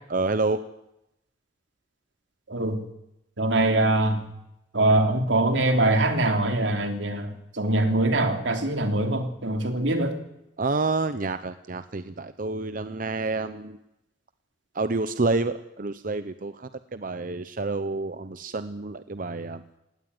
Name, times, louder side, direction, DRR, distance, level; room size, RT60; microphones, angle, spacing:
voice 1, 0.1-0.6 10.6-13.8 14.7-19.6, right 3 dB, 50° right, 11 dB, 0.8 m, -28 dB
voice 2, 2.5-2.8 3.4-4.3 4.7-10.1, right 2 dB, 85° right, 5 dB, 3.1 m, -23 dB
18.5 x 17.0 x 9.6 m, 0.86 s
head